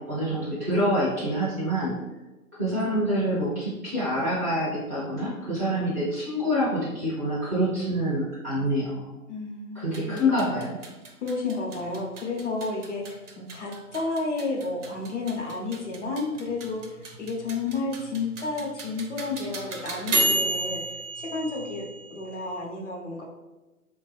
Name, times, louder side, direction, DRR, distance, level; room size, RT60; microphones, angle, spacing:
voice 1, 0.0-2.0 2.5-9.1 9.7-10.8, equal, 10° right, -12 dB, 0.6 m, -26 dB
voice 2, 9.3-10.4 11.2-13.2 13.5-23.2, left 3 dB, 50° left, 0 dB, 0.8 m, -31 dB
sound 1, 9.8-22.6, right 1 dB, 50° right, 0.7 m, -33 dB
3.4 x 2.2 x 3.2 m, 1.1 s
figure-of-eight pair, 135°, 46 cm